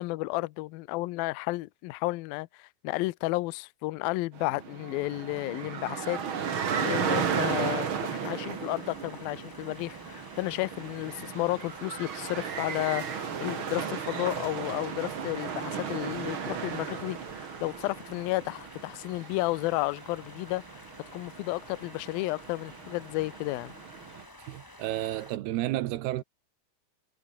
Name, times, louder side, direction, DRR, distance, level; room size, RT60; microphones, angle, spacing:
voice 1, 0.0-20.6 21.1-23.8, left 21 dB, 80° left, 2.2 m, -32 dB
sound 1, 4.3-24.2, right 7 dB, 45° right, 1.9 m, -35 dB
sound 2, 7.2-25.4, left 1 dB, 10° left, 0.9 m, -51 dB
voice 2, 24.4-26.2, right 15 dB, 75° right, 2.9 m, -31 dB
omnidirectional pair, 4.9 m